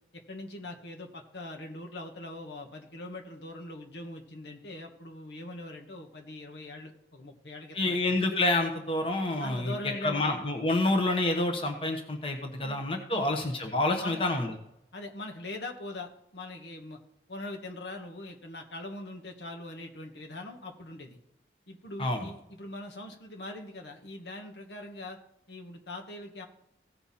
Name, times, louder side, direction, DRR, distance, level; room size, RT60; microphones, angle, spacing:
voice 1, 0.1-8.2 9.4-10.3 12.6-12.8 13.1-13.3 14.0-14.2 14.9-17.0 17.3-21.2 21.7-25.2 25.5-26.5, left 1 dB, 80° left, 2 dB, 1.5 m, -42 dB
voice 2, 7.7-9.7 10.0-14.5 22.0-22.3, left 2 dB, 30° left, 3 dB, 1.2 m, -28 dB
16.5 x 5.6 x 4.3 m, 0.82 s
head